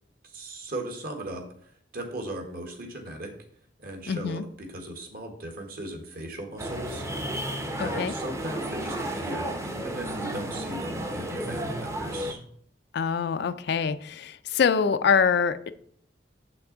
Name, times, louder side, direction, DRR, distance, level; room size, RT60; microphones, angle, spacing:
voice 1, 0.2-1.4 1.9-3.3 3.8-7.1 7.8-12.4, right 1 dB, 50° right, 3 dB, 1.4 m, -37 dB
voice 2, 4.1-4.4 7.8-8.1 12.9-15.7, left 6 dB, 60° left, 12 dB, 0.4 m, -25 dB
sound 1, 6.6-12.3, right 1 dB, 15° right, 0.7 m, -33 dB
7.5 x 5.8 x 3.9 m, 0.64 s
head